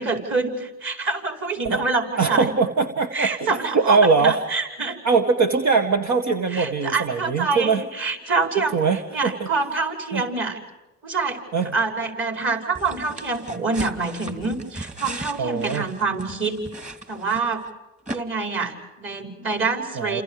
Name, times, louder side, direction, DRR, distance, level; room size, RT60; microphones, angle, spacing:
voice 1, 0.0-2.5 3.1-5.0 6.5-8.8 9.1-10.6 11.0-11.4 11.7-16.6 17.1-17.6 18.1-20.2, right 4 dB, 40° right, 4 dB, 5.8 m, -26 dB
voice 2, 2.2-4.4 5.0-7.8 8.6-9.5 10.1-10.2 11.5-11.7 15.4-15.9 20.0-20.2, right 4 dB, 65° right, 5 dB, 1.9 m, -21 dB
sound 1, 12.8-17.7 18.1-18.2, right 2 dB, 25° right, 2.7 m, -37 dB
30.0 x 28.0 x 5.1 m, 1.1 s
cardioid pair, 90°, 30 cm